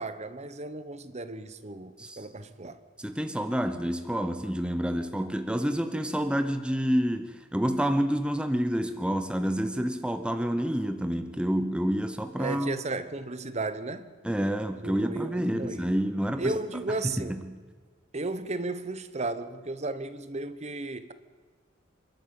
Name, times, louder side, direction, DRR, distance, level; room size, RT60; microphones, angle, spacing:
voice 1, 0.0-2.8 12.4-14.2 14.8-15.9 16.4-17.4 18.1-21.1, right 2 dB, 35° right, 1.0 m, -34 dB
voice 2, 3.0-12.8 14.2-16.6 17.0-17.6, equal, 5° right, 0.8 m, -28 dB
27.0 x 12.0 x 8.9 m
head